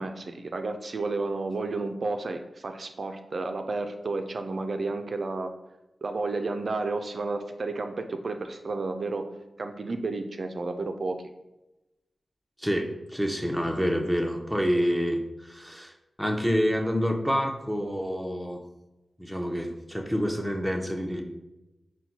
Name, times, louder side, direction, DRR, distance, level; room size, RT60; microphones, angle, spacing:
voice 1, 0.0-5.5 6.0-9.3 9.6-11.2, right 3 dB, 60° right, 6 dB, 0.3 m, -31 dB
voice 2, 12.6-15.9 16.2-18.6 19.2-21.2, equal, ahead, 3 dB, 0.6 m, -27 dB
4.3 x 2.1 x 4.1 m, 0.98 s
cardioid pair, 50°, 0 cm